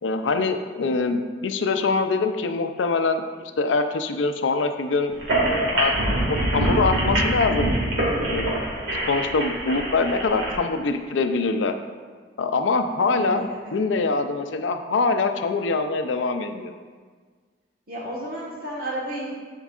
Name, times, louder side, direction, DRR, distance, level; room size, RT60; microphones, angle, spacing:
voice 1, 0.0-3.2 3.6-5.1 5.4-5.9 6.3-7.7 8.2-8.6 9.1-11.7 12.4-16.7, left 3 dB, 85° left, 7 dB, 0.5 m, -24 dB
sound 1, 5.1-10.5, right 1 dB, 75° right, 1.9 m, -24 dB
voice 2, 13.0-13.8 17.9-19.3, right 1 dB, 50° right, -3 dB, 1.4 m, -33 dB
11.0 x 4.5 x 2.4 m, 1.6 s
head